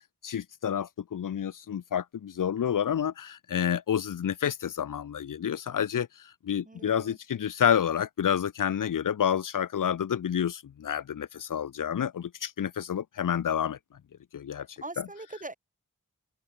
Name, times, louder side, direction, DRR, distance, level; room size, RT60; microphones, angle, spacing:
voice 1, 0.2-13.8 14.3-14.7 15.0-15.1, left 9 dB, 85° left, 0.7 m, -29 dB
voice 2, 6.6-7.2 14.8-15.5, right 2 dB, 25° right, 2.6 m, -41 dB
wide cardioid pair, 90°, 31 cm